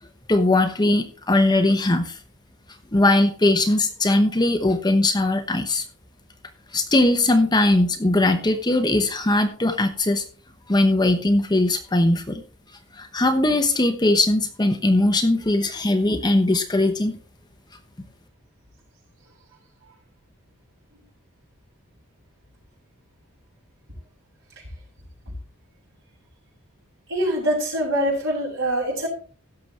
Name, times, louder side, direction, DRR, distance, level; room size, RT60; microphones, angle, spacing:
voice 1, 0.3-2.2 2.9-5.8 6.7-10.2 10.7-12.4 12.9-17.2, left 2 dB, 20° left, 6 dB, 0.9 m, -20 dB
voice 2, 27.1-29.1, equal, 60° right, -5 dB, 6.8 m, -24 dB
16.5 x 6.8 x 3.3 m, 0.39 s
head